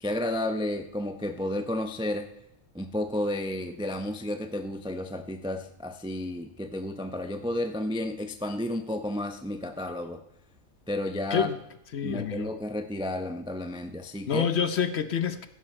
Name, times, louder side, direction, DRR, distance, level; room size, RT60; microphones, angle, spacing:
voice 1, 0.0-2.3 2.7-10.2 10.9-11.5 12.0-14.5, left 1 dB, 5° right, 6 dB, 0.4 m, -32 dB
voice 2, 11.9-12.5 14.3-15.5, left 7 dB, 55° left, 11 dB, 0.9 m, -27 dB
16.0 x 10.5 x 4.3 m, 0.81 s
omnidirectional pair, 1.5 m